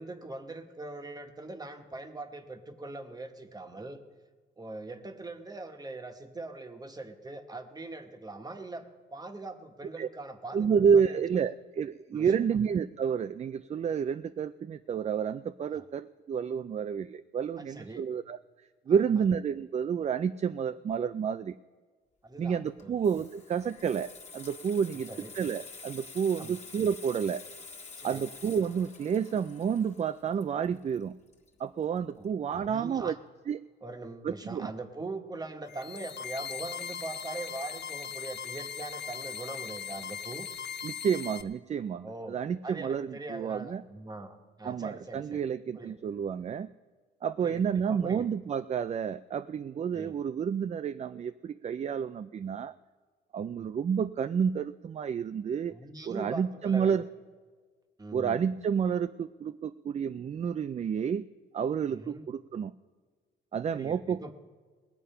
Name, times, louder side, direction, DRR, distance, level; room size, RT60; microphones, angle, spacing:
voice 1, 0.0-4.0 4.6-8.8 9.1-11.2 12.1-12.5 15.7-15.8 17.6-18.0 19.2-19.3 22.2-22.9 25.1-25.3 26.4-26.6 28.0-28.2 32.2-32.3 32.7-33.1 33.8-40.5 42.0-45.4 45.8-46.0 47.4-48.3 49.9-50.2 53.5-53.7 55.7-57.0 58.0-58.6 61.9-62.3 63.7-64.3, right 2 dB, 20° right, 6 dB, 1.3 m, -42 dB
voice 2, 10.5-18.4 18.9-21.6 22.4-25.1 25.3-27.4 28.0-31.2 31.6-33.2 33.5-33.6 34.2-34.7 40.8-43.8 44.6-46.7 47.2-52.7 53.3-55.7 56.1-57.0 58.1-61.2 61.5-62.7 63.5-64.3, right 7 dB, 35° right, 11 dB, 0.4 m, -30 dB
Water tap faucet / Sink (filling or washing), 22.7-32.0 32.3-32.5, left 4 dB, 35° left, 1.6 m, -48 dB
sound 1, 35.7-41.4, left 7 dB, 60° left, 0.9 m, -39 dB
19.5 x 8.2 x 5.6 m, 1.5 s
cardioid pair, 90°, 20 cm